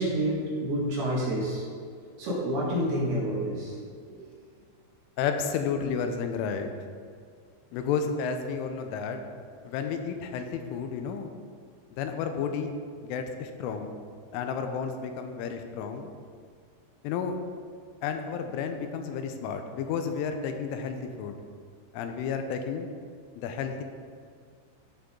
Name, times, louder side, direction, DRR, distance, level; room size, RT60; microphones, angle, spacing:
voice 1, 0.0-1.7 2.2-3.8 4.1-4.3, right 1 dB, 60° right, -5 dB, 3.6 m, -28 dB
voice 2, 5.2-6.7 7.7-9.2 9.6-11.3 11.9-12.7 13.0-13.9 14.3-16.1 17.0-17.4 18.0-21.4 21.9-22.9 23.4-23.8, left 6 dB, 90° left, 6 dB, 3.3 m, -31 dB
14.0 x 6.7 x 3.8 m, 2.1 s
omnidirectional pair, 5.6 m